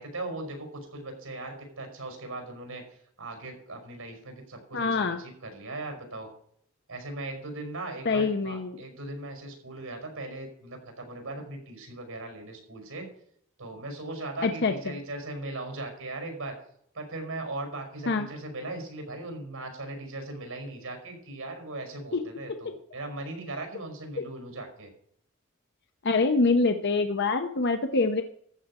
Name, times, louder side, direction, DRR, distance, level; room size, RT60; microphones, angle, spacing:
voice 1, 0.0-2.8 3.2-6.3 6.9-13.1 13.6-16.5 16.9-24.9, right 2 dB, 80° right, 3 dB, 5.4 m, -38 dB
voice 2, 4.7-5.2 8.1-8.8 14.4-14.7 18.1-18.3 22.1-22.2 26.0-28.2, left 3 dB, 55° left, 7 dB, 0.8 m, -25 dB
14.0 x 5.1 x 8.7 m, 0.64 s
head